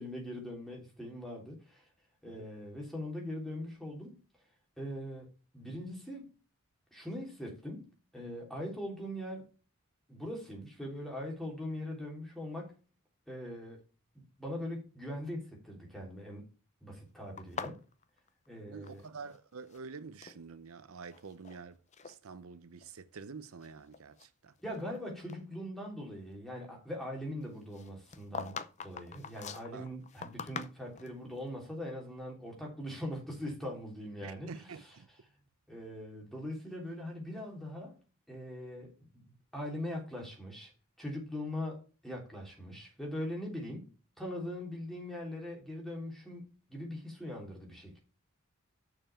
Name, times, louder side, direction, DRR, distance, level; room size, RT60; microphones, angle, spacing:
voice 1, 0.0-1.9 2.2-4.2 4.8-5.3 5.5-6.3 6.9-9.5 10.1-12.8 13.3-13.8 14.1-16.5 16.8-17.8 18.5-19.0 24.6-34.7 35.7-38.0 38.3-39.2 39.5-40.7 41.0-43.9 44.2-48.0, left 1 dB, ahead, 3.3 m, -41 dB
sound 1, 17.4-19.4 19.6-20.4 21.0-21.6 21.9-22.2 22.8-22.9 23.5-25.0 25.3-25.4 27.7-31.2, left 5 dB, 35° left, 0.6 m, -44 dB
voice 2, 18.6-24.5 29.7-29.9 34.2-35.1, right 5 dB, 90° right, 0.7 m, -48 dB
6.8 x 6.0 x 7.0 m
head